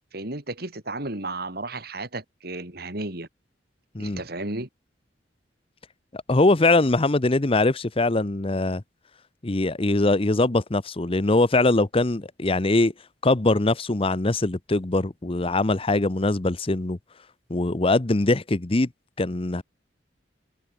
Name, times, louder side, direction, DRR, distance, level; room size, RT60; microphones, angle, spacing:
voice 1, 0.1-3.3 4.0-4.7, right 2 dB, 60° right, 4.3 m, -33 dB
voice 2, 6.1-8.8 9.4-12.9 13.2-17.0 17.5-18.9 19.2-19.6, left 2 dB, 30° left, 0.9 m, -22 dB
head